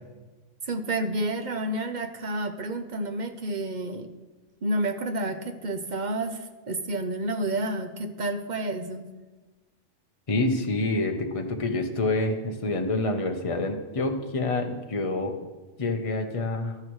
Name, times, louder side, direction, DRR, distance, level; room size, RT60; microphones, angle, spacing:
voice 1, 0.7-4.1 4.6-9.1, right 1 dB, 45° right, 7 dB, 0.8 m, -30 dB
voice 2, 10.3-15.4 15.8-16.8, left 2 dB, 30° left, 4 dB, 1.0 m, -27 dB
14.5 x 12.0 x 3.1 m, 1.2 s
omnidirectional pair, 1.2 m